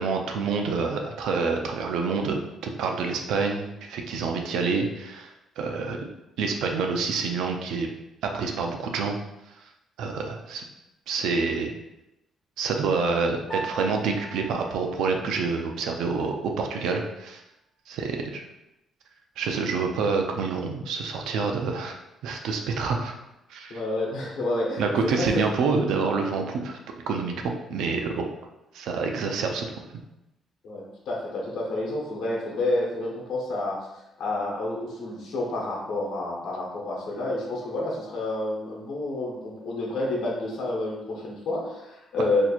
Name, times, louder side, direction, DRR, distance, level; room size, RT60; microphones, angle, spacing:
voice 1, 0.0-6.1 6.4-7.9 8.2-9.2 10.0-10.6 11.1-11.7 12.6-17.4 17.9-18.4 19.4-23.1 23.5-23.8 24.8-26.8 27.1-28.3 28.7-29.7, right 4 dB, 80° right, 3 dB, 0.5 m, -27 dB
Piano, 13.5-16.0, right 2 dB, 25° left, 1.4 m, -39 dB
voice 2, 23.7-25.4 30.6-33.8 34.2-42.5, left 2 dB, 75° left, -3 dB, 1.0 m, -29 dB
4.3 x 2.8 x 2.4 m, 0.92 s
cardioid pair, 145°, 0 cm